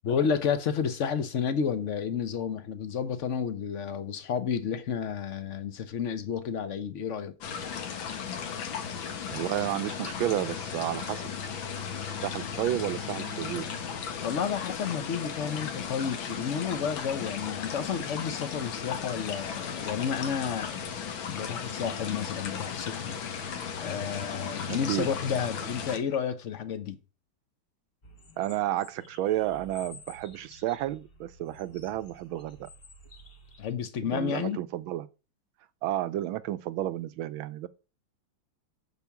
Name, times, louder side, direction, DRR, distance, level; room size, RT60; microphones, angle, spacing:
voice 1, 0.0-7.4 14.2-20.8 21.3-23.2 23.8-27.0 33.6-34.6, left 7 dB, 55° left, 0.8 m, -31 dB
sound 1, 7.4-26.0, left 7 dB, 70° left, 2.0 m, -36 dB
voice 2, 9.3-11.3 12.2-13.7 24.7-25.1 28.4-32.7 34.0-35.1 35.8-37.7, right 13 dB, 85° right, 1.5 m, -31 dB
sound 2, 28.0-33.7, left 1 dB, 35° left, 1.1 m, -52 dB
8.2 x 4.3 x 7.1 m
omnidirectional pair, 2.2 m